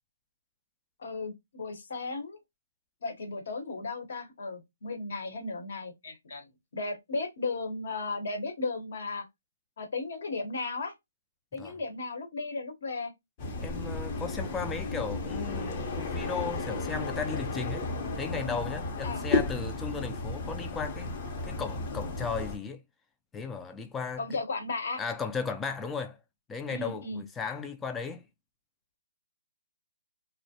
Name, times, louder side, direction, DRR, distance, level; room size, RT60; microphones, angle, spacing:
voice 1, 1.0-2.4 3.0-9.2 9.8-10.9 11.5-13.1 19.0-19.2 24.2-25.0 26.7-27.2, left 3 dB, 60° left, 0.9 m, -35 dB
sound 1, 13.4-22.6, left 3 dB, 35° left, 0.7 m, -33 dB
voice 2, 13.6-17.9 18.1-21.1 21.4-22.8 23.3-24.3 25.0-26.2 26.5-28.2, left 5 dB, 10° left, 0.3 m, -35 dB
2.3 x 2.0 x 2.7 m
hypercardioid pair, 145°, 0 cm